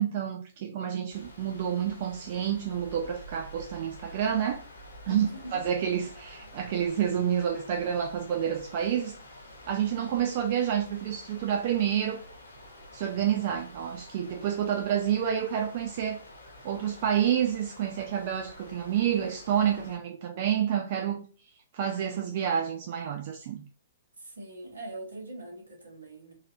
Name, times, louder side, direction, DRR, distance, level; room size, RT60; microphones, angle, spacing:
voice 1, 0.0-4.6 5.1-5.3 5.5-9.1 9.6-12.2 12.9-16.2 16.6-21.2 21.7-23.6, right 9 dB, 45° right, 0.5 m, -29 dB
sound 1, 1.1-20.0, equal, 75° left, 1.2 m, -49 dB
voice 2, 5.0-5.6 24.2-26.3, right 1 dB, 75° right, 1.4 m, -42 dB
4.0 x 2.6 x 2.6 m
figure-of-eight pair, 115°, 0 cm